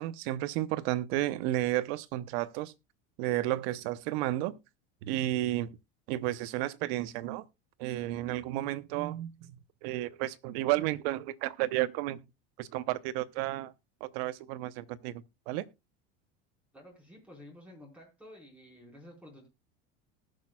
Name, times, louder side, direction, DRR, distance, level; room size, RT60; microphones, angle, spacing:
voice 1, 0.0-2.7 3.2-4.5 5.0-5.7 6.1-7.4 7.8-12.2 12.6-13.7 14.0-15.6, right 15 dB, 75° right, 0.9 m, -32 dB
voice 2, 16.7-19.5, left 1 dB, 5° right, 4.3 m, -52 dB
19.0 x 6.4 x 2.3 m
supercardioid pair, 130°, 31 cm